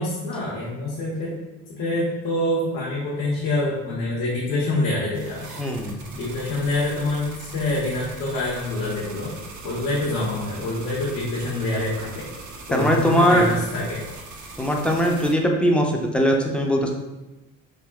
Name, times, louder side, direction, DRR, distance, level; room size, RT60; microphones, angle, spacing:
voice 1, 0.0-1.4 1.7-5.6 6.1-9.3 9.6-12.3 12.7-14.0, left 2 dB, 90° left, -6 dB, 0.8 m, -26 dB
sound 1, 5.1-15.3, right 3 dB, 65° right, 0.7 m, -41 dB
voice 2, 5.6-6.0 12.7-13.5 14.6-16.9, equal, 5° left, 0 dB, 0.3 m, -20 dB
3.4 x 2.5 x 2.2 m, 1.1 s
cardioid pair, 100°, 32 cm